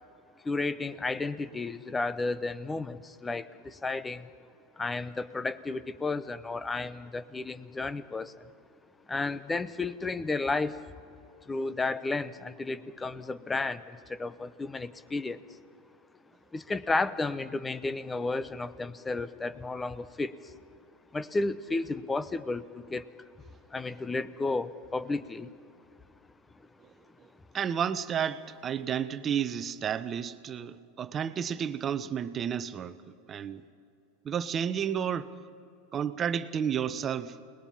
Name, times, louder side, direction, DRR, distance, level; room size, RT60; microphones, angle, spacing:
voice 1, 0.4-4.3 4.8-8.4 9.1-10.8 11.5-15.4 16.5-20.5 21.1-23.1 23.7-25.5, left 3 dB, 15° left, 15 dB, 0.9 m, -32 dB
voice 2, 27.5-33.0 33.3-33.6 34.2-35.3 35.9-37.5, right 8 dB, 30° right, 13 dB, 0.9 m, -31 dB
29.5 x 20.0 x 5.7 m, 2.5 s
hypercardioid pair, 95°, 0 cm